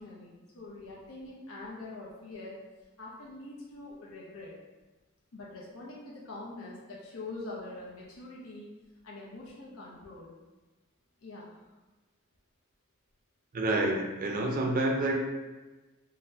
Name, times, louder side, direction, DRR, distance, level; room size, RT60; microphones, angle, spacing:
voice 1, 0.0-2.6 3.0-4.5 5.3-8.7 9.0-10.3 11.2-11.6, left 2 dB, 70° left, -5 dB, 0.6 m, -44 dB
voice 2, 13.5-15.1, right 2 dB, 40° right, 0 dB, 0.4 m, -28 dB
3.9 x 2.1 x 2.7 m, 1.2 s
head